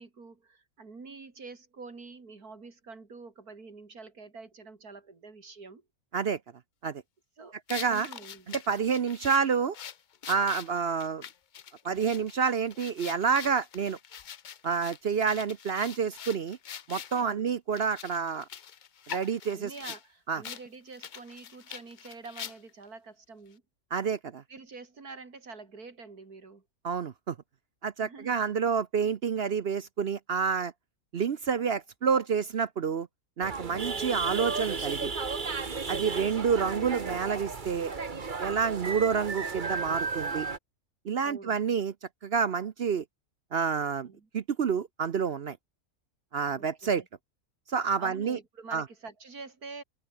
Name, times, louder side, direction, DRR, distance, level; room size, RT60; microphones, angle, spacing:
voice 1, 0.0-5.9 7.4-7.6 7.9-8.5 17.2-17.5 19.5-23.6 24.5-26.6 28.0-28.6 41.2-41.6 44.0-44.3 46.5-47.1 48.0-49.8, right 4 dB, 80° right, 3.6 m, -47 dB
sound 1, 7.7-17.2 17.7-20.0 20.4-20.6 20.9-22.8, left 8 dB, 55° left, 0.5 m, -44 dB
voice 2, 7.7-8.1 8.5-9.8 10.3-11.2 11.8-14.0 14.6-16.6 16.9-18.5 19.1-19.7 20.3-20.4 23.9-24.4 26.8-27.3 27.8-30.7 31.1-33.1 33.4-35.1 35.9-37.9 38.4-40.5 41.0-41.9 42.2-43.0 43.5-44.1 44.3-45.6 46.3-47.0 47.7-48.4 48.7-48.8, right 6 dB, 50° right, 0.9 m, -28 dB
sound 2, 33.4-40.6, right 4 dB, 35° right, 1.5 m, -34 dB
omnidirectional pair, 1.6 m